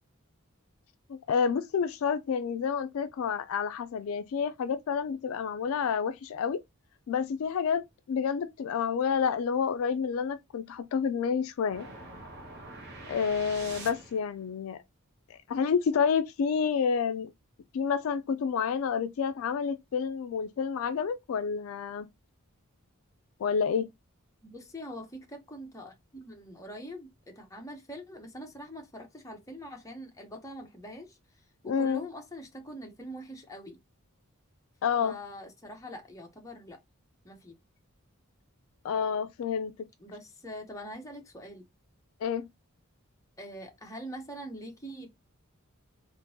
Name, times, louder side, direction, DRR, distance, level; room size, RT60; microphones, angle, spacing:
voice 1, 1.1-6.6 7.1-11.9 13.1-14.8 15.3-17.3 17.7-22.1 23.4-23.9 31.7-32.0 34.8-35.2 38.8-39.7 42.2-42.5, left 6 dB, 70° left, 0.3 m, -29 dB
sound 1, 11.7-14.4, right 2 dB, 50° right, 1.0 m, -45 dB
voice 2, 24.4-31.2 31.6-33.8 35.0-36.8 37.2-37.5 40.0-41.7 43.4-45.1, equal, 15° left, 0.7 m, -43 dB
3.7 x 2.5 x 2.6 m
head